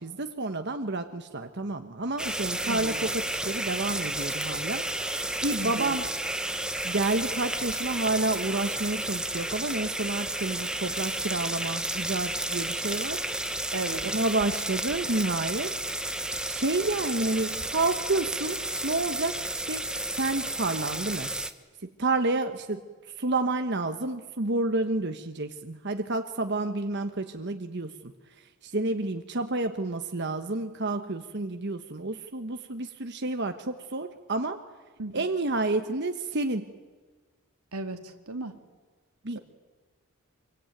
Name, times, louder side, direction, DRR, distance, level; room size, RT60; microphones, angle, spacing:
voice 1, 0.0-4.9 5.4-6.1 6.8-13.2 14.0-15.7 16.4-19.8 20.1-21.3 22.0-22.8 23.2-28.1 28.6-34.6 35.1-36.7 39.2-39.4, right 2 dB, 50° right, 6 dB, 1.2 m, -29 dB
sound 1, 2.2-21.5, right 1 dB, 5° right, 1.1 m, -32 dB
voice 2, 2.6-3.0 5.6-6.0 13.7-14.0 35.0-35.2 37.7-38.5, right 2 dB, 85° right, 6 dB, 2.4 m, -36 dB
26.0 x 23.5 x 9.2 m, 1.4 s
head